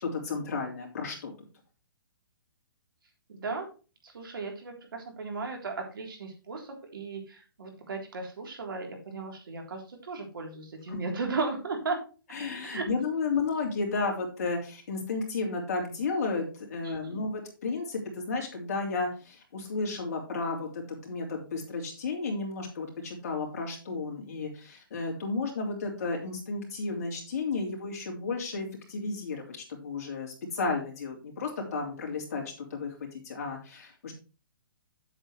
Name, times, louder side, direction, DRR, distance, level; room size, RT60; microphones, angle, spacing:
voice 1, 0.0-1.3 10.9-11.0 12.3-32.9 33.2-34.1, left 4 dB, 40° left, 0 dB, 3.1 m, -33 dB
voice 2, 3.3-3.7 4.0-12.0 12.6-12.9 16.8-16.9, right 3 dB, 70° right, 2 dB, 3.6 m, -36 dB
9.2 x 8.0 x 3.2 m, 0.34 s
hypercardioid pair, 175°, 12 cm